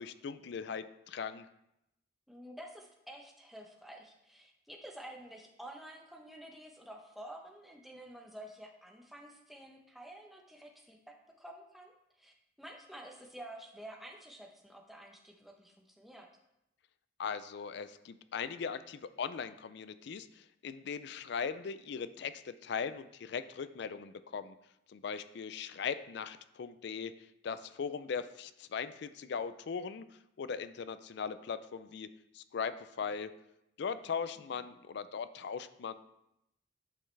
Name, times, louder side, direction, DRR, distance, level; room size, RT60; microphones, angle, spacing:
voice 1, 0.0-1.5 17.2-24.6 24.9-27.1 27.4-30.0 30.4-32.1 32.3-33.3 33.8-35.9, left 6 dB, 60° left, 13 dB, 0.4 m, -39 dB
voice 2, 2.3-11.0 11.4-16.3 34.5-34.6, right 1 dB, ahead, 1 dB, 0.8 m, -50 dB
8.4 x 5.6 x 3.2 m, 0.84 s
head